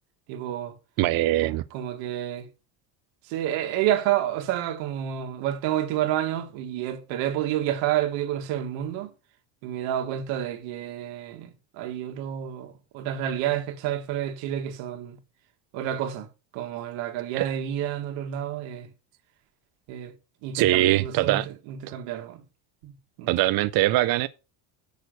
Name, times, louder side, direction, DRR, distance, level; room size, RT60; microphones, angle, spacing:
voice 1, 0.3-0.8 1.4-2.5 3.3-9.1 9.6-15.2 15.7-16.3 16.5-18.9 19.9-20.1 20.4-22.4 22.8-23.3, right 11 dB, 90° right, 1.8 m, -29 dB
voice 2, 1.0-1.6 17.4-17.5 20.5-21.5 23.3-24.3, right 16 dB, 55° right, 0.5 m, -22 dB
6.7 x 6.2 x 6.5 m
cardioid pair, 140°, 44 cm